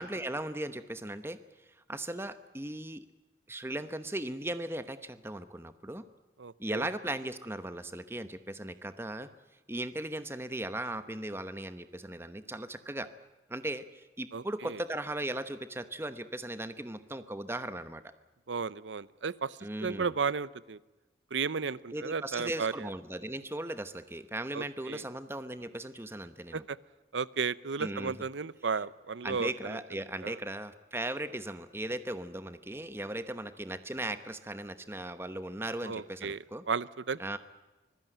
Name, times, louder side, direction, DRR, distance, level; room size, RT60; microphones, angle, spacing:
voice 1, 0.0-1.4 1.9-3.0 3.5-6.0 6.6-9.3 9.7-13.1 13.5-18.0 19.6-20.1 21.9-26.6 27.8-28.3 29.2-36.6 37.2-37.4, right 1 dB, 15° right, 11 dB, 1.0 m, -37 dB
voice 2, 6.4-6.9 14.3-14.8 18.5-20.8 21.3-22.9 24.5-25.0 26.5-26.8 27.1-29.8 30.2-30.4 35.8-36.4 36.7-37.4, right 5 dB, 90° right, 19 dB, 0.7 m, -34 dB
24.5 x 16.0 x 9.1 m, 1.2 s
head